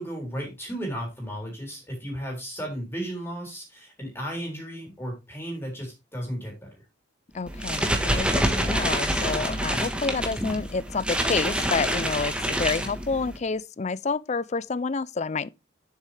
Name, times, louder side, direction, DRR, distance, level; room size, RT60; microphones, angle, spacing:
voice 1, 0.0-6.8, equal, 10° left, 3.6 m, -34 dB
voice 2, 7.3-15.5, left 4 dB, 35° left, 0.4 m, -29 dB
sound 1, 7.5-13.4, right 1 dB, 5° right, 1.3 m, -26 dB
9.9 x 7.5 x 3.3 m
head